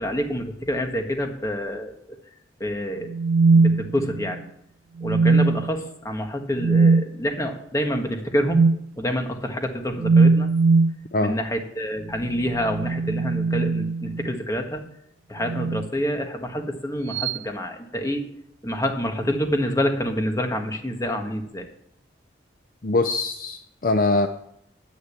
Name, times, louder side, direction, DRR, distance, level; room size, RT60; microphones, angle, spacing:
voice 1, 0.0-1.9 2.6-3.1 3.5-4.5 5.0-8.6 8.9-10.5 11.2-14.8 15.3-18.3 18.6-21.6, equal, 15° left, 4 dB, 1.6 m, -27 dB
sound 1, 3.1-4.4 5.0-5.8 6.6-7.1 8.5-8.8 10.0-11.0 12.5-14.4 15.4-15.9 17.1-17.4, right 4 dB, 75° right, 0.4 m, -20 dB
voice 2, 22.8-24.3, left 2 dB, 45° left, 8 dB, 0.6 m, -22 dB
10.0 x 9.4 x 8.3 m, 0.76 s
head